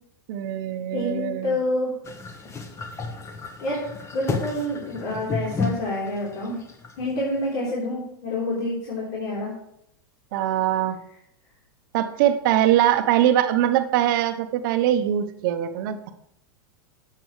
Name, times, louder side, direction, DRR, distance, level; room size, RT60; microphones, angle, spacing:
voice 1, 0.3-1.6 10.3-11.0 11.9-16.1, right 11 dB, 60° right, 9 dB, 0.8 m, -22 dB
voice 2, 0.9-1.9 3.6-3.8 4.1-6.6 7.0-9.5, left 1 dB, 55° left, -6 dB, 3.7 m, -27 dB
sound 1, 2.0-7.4, left 4 dB, 25° left, 1.1 m, -32 dB
11.5 x 7.7 x 3.2 m, 0.76 s
hypercardioid pair, 115°, 12 cm